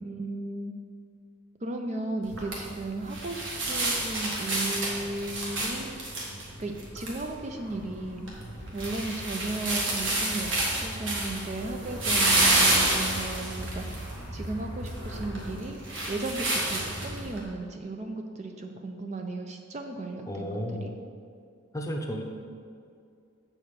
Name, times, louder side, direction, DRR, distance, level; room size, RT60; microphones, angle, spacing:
voice 1, 0.0-0.7 1.6-5.9 6.6-8.3 8.7-13.8 14.3-15.8 16.1-20.9, right 2 dB, 35° right, 4 dB, 0.4 m, -35 dB
sound 1, 2.2-17.4, right 2 dB, 65° right, 1.7 m, -29 dB
voice 2, 20.3-20.9 21.7-22.2, equal, 15° left, 1 dB, 0.7 m, -33 dB
7.6 x 5.0 x 5.8 m, 2.3 s
head